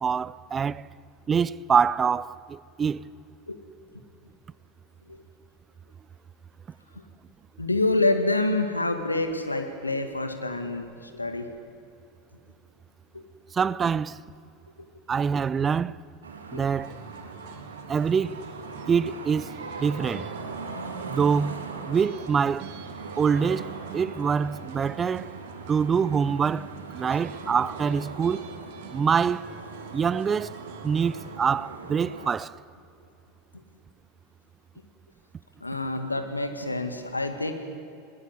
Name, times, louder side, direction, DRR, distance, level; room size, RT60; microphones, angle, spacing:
voice 1, 0.0-0.8 1.3-3.0 13.5-14.2 15.1-16.0 16.5-17.0 17.9-18.4 18.9-19.5 19.8-20.3 21.1-22.7 23.2-25.3 25.7-28.4 28.9-29.5 29.9-30.6 30.8-32.6, right 6 dB, 25° right, 0.5 m, -25 dB
voice 2, 7.6-11.5 13.1-13.2 16.5-16.7 35.6-37.5, left 2 dB, 90° left, 2.0 m, -27 dB
sound 1, 16.2-32.3, right 4 dB, 80° right, 2.7 m, -40 dB
sound 2, 16.8-31.4, right 8 dB, 55° right, 2.4 m, -46 dB
21.0 x 18.5 x 8.1 m
figure-of-eight pair, 85°, 0 cm